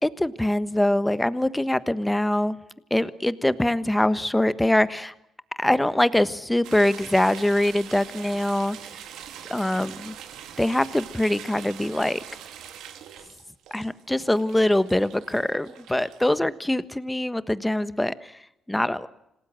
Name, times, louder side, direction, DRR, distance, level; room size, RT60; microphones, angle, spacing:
voice 1, 0.0-2.6 2.9-5.1 5.6-8.8 9.5-10.1 10.6-12.2 13.7-18.3 18.7-19.1, left 1 dB, 10° left, 15 dB, 1.3 m, -23 dB
sound 1, 6.6-16.3, right 9 dB, 85° right, 2.7 m, -43 dB
27.0 x 18.5 x 7.8 m, 0.85 s
cardioid pair, 90°, 0 cm